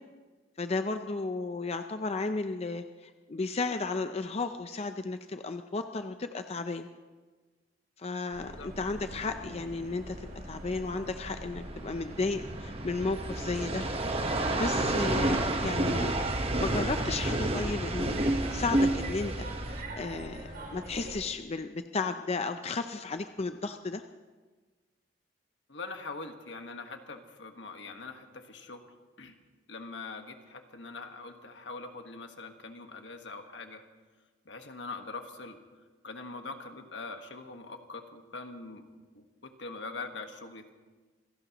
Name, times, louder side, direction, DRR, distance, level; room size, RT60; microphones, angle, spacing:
voice 1, 0.6-6.9 8.0-13.9 14.5-24.0, left 3 dB, 35° left, 8 dB, 0.5 m, -34 dB
sound 1, 8.3-21.1, right 1 dB, 55° right, 7.1 m, -43 dB
sound 2, 9.0-19.8, right 1 dB, 35° right, 1.3 m, -30 dB
voice 2, 25.7-28.8 29.2-29.4 29.7-33.8 34.4-35.6 36.0-38.8 39.1-40.7, left 3 dB, 80° left, 5 dB, 1.5 m, -43 dB
27.0 x 17.0 x 3.0 m, 1.3 s
head